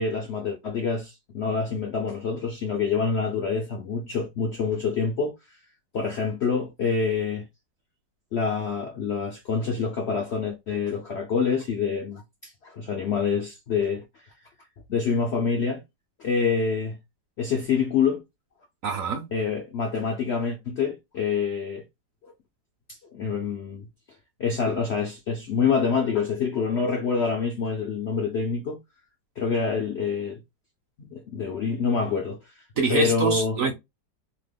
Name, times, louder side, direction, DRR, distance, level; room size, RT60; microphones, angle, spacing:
voice 1, 0.0-5.6 5.9-7.4 8.3-14.0 14.9-15.8 16.2-17.0 17.4-18.2 19.3-21.8 22.2-22.3 23.1-23.9 24.4-28.8 29.4-30.4 31.0-32.6 32.9-33.6, left 5 dB, 70° left, 0.6 m, -26 dB
voice 2, 18.8-19.3 32.8-33.7, right 4 dB, 65° right, 0.9 m, -25 dB
2.9 x 2.1 x 3.3 m
omnidirectional pair, 1.9 m